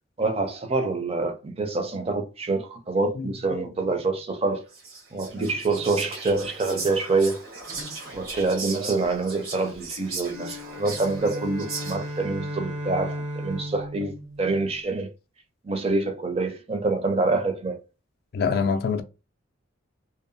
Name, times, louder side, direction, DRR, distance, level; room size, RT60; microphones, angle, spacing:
voice 1, 0.2-4.6 5.1-7.4 8.1-15.1 15.6-17.8, right 3 dB, 30° right, 0.4 m, -26 dB
voice 2, 3.2-3.6 7.8-8.0 18.3-19.0, left 5 dB, 50° left, 0.3 m, -26 dB
Whispering, 4.7-12.3, right 4 dB, 90° right, 1.1 m, -38 dB
sound 1, 10.2-14.9, equal, 75° right, 0.7 m, -35 dB
2.7 x 2.2 x 2.5 m
head